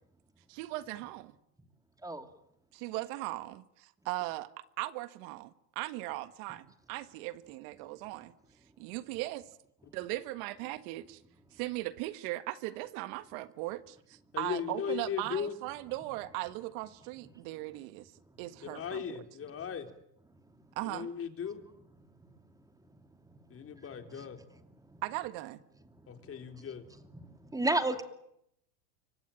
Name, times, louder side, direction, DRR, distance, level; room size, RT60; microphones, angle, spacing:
voice 1, 0.5-1.3 2.7-4.5 4.8-8.3 8.8-9.4 9.9-11.2 11.5-18.1 18.4-19.0 20.7-21.1 25.0-25.6, right 18 dB, 60° right, 1.7 m, -38 dB
voice 2, 14.3-15.5 18.6-19.9 20.8-21.6 23.5-24.4 26.1-26.8, left 7 dB, 25° left, 3.8 m, -37 dB
voice 3, 27.2-28.0, right 2 dB, 5° right, 2.7 m, -30 dB
25.5 x 25.0 x 9.0 m
supercardioid pair, 120°, 50 cm